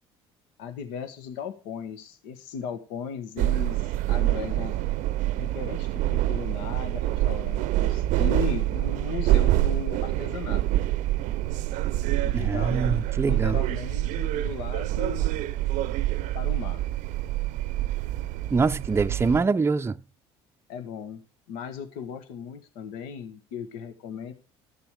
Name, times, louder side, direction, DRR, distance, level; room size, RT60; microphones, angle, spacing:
voice 1, 0.6-4.8 5.4-10.8 12.2-15.3 16.3-16.9 20.7-21.2 21.5-24.3, left 7 dB, 80° left, 1.5 m, -37 dB
sound 1, 3.4-19.4, right 15 dB, 70° right, 0.6 m, -26 dB
voice 2, 12.3-13.6 18.5-20.0, right 4 dB, 20° right, 0.5 m, -24 dB
13.0 x 7.0 x 4.9 m
supercardioid pair, 70°, 13 cm